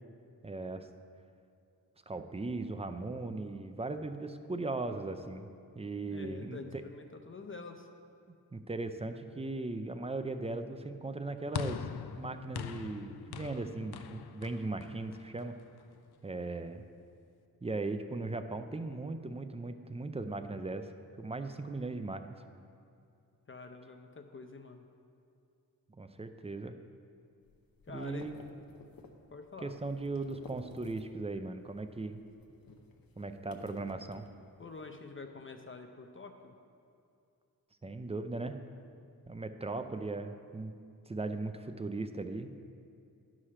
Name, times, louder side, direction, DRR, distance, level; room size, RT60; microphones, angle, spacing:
voice 1, 0.4-0.9 2.1-5.5 5.8-6.8 8.5-11.8 12.2-15.6 16.2-16.8 17.6-20.9 21.2-22.4 26.0-26.7 27.9-28.4 29.6-32.2 33.2-34.2 37.8-38.6 39.3-40.7 41.1-42.5, right 3 dB, 15° right, 8 dB, 0.4 m, -38 dB
voice 2, 6.0-7.9 23.5-24.8 27.8-28.3 29.3-29.7 34.6-36.5, left 4 dB, 35° left, 5 dB, 0.6 m, -47 dB
sound 1, 11.5-16.0, left 8 dB, 85° left, 0.5 m, -42 dB
sound 2, 27.4-31.3 31.6-34.8, left 3 dB, 65° left, 0.8 m, -54 dB
11.0 x 4.9 x 5.7 m, 2.5 s
wide cardioid pair, 110°, 38 cm